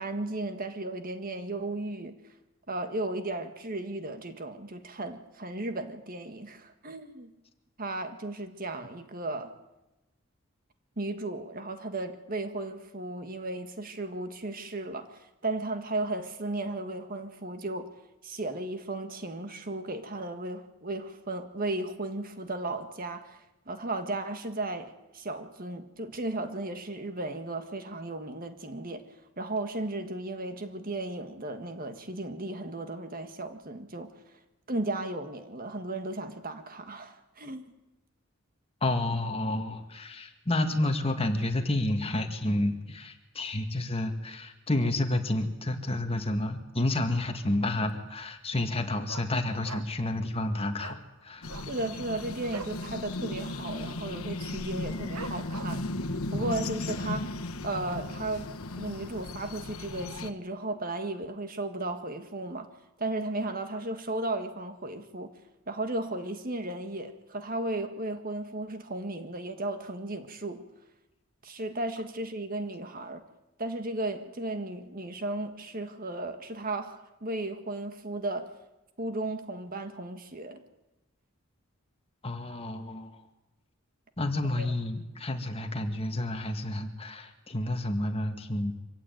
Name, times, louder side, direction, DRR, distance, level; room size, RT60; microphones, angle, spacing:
voice 1, 0.0-2.2 2.7-7.3 7.8-9.5 11.0-17.9 18.2-29.0 29.4-34.1 34.7-37.7 51.7-55.8 56.3-57.3 57.6-58.5 58.8-62.7 63.0-65.3 65.7-70.7 71.4-73.2 73.6-78.5 79.0-80.6 84.6-84.7, right 2 dB, 40° right, 8 dB, 1.7 m, -35 dB
voice 2, 38.8-51.5 56.4-56.5 82.2-83.2 84.2-88.7, left 1 dB, 25° left, 6 dB, 1.9 m, -30 dB
Dog, 47.6-48.0 48.3-48.4 48.7-50.1 50.4-50.5 50.8-51.0 51.4-52.8 53.2-53.3 53.6-54.0 54.5-54.6 55.1-55.9 56.4-56.5, right 4 dB, 80° right, 1.6 m, -43 dB
sound 1, 51.4-60.3, left 2 dB, 80° left, 1.3 m, -36 dB
25.0 x 16.0 x 9.3 m, 1.0 s
head